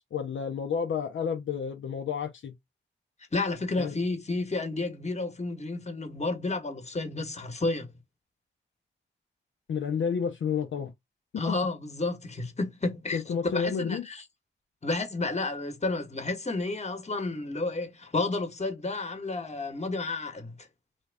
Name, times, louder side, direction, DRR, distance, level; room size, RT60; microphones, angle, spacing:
voice 1, 0.0-2.5 3.8-4.0 9.7-10.9 11.3-11.6 13.1-14.1, left 6 dB, 70° left, 0.7 m, -30 dB
voice 2, 3.3-7.9 11.4-14.2 14.8-20.7, left 3 dB, 35° left, 1.2 m, -31 dB
3.2 x 2.3 x 3.4 m
supercardioid pair, 40°, 21 cm